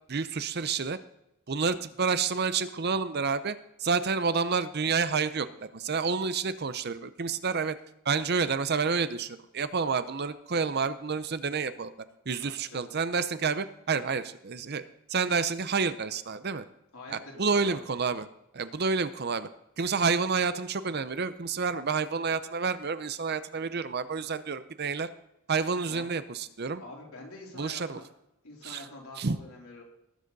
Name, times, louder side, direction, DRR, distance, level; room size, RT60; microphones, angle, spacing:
voice 1, 0.1-1.0 1.5-7.8 8.0-11.9 12.3-14.8 15.1-16.6 17.1-18.3 18.5-19.5 19.8-25.1 25.5-26.8 27.5-28.0 28.6-28.8 29.2-29.4, right 5 dB, 50° right, 13 dB, 0.7 m, -29 dB
voice 2, 12.4-12.8 16.9-17.8 25.9-26.0 26.8-28.1 28.4-29.8, left 2 dB, 75° left, -2 dB, 3.7 m, -46 dB
19.5 x 7.8 x 4.1 m, 0.84 s
head